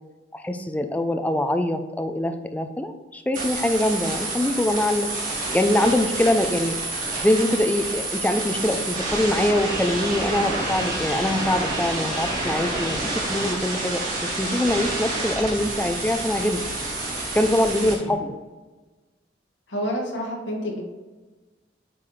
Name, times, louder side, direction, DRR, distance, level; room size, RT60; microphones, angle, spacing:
voice 1, 0.3-5.1 5.5-6.7 7.2-16.6 17.4-18.4, left 1 dB, 10° left, 7 dB, 0.4 m, -23 dB
sound 1, 3.3-18.0, right 2 dB, 45° right, 1.6 m, -28 dB
voice 2, 19.7-20.8, equal, 75° left, 0 dB, 1.4 m, -29 dB
7.6 x 3.9 x 3.2 m, 1.2 s
head